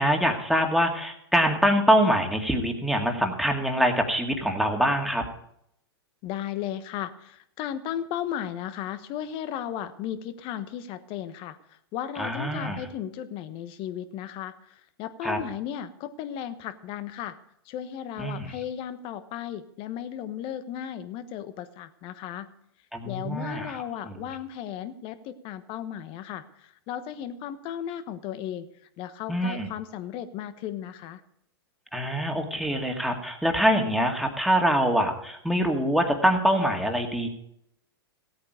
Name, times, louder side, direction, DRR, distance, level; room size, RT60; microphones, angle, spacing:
voice 1, 0.0-5.2 12.2-12.9 15.2-15.4 18.2-18.5 22.9-24.2 29.3-29.7 31.9-37.3, equal, ahead, 2 dB, 2.2 m, -24 dB
voice 2, 6.2-11.6 11.9-17.4 17.7-22.5 23.0-28.7 29.0-31.2, left 10 dB, 40° left, 13 dB, 1.2 m, -35 dB
16.5 x 8.8 x 5.0 m, 0.74 s
hypercardioid pair, 110°, 13 cm